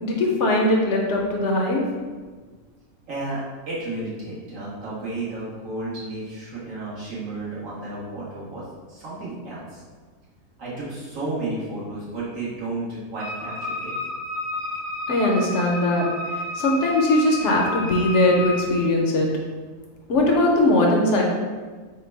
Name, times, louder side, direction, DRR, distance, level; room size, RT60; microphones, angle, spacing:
voice 1, 0.0-1.8 15.1-16.1 16.3-19.3 20.1-21.2, left 1 dB, 65° left, 0 dB, 0.8 m, -20 dB
voice 2, 3.1-9.8 10.6-13.9, right 2 dB, 65° right, -9 dB, 1.7 m, -32 dB
Wind instrument woodwind instrument, 13.2-18.7, left 3 dB, 80° right, 2.3 m, -31 dB
3.8 x 2.2 x 4.4 m, 1.4 s
omnidirectional pair, 1.5 m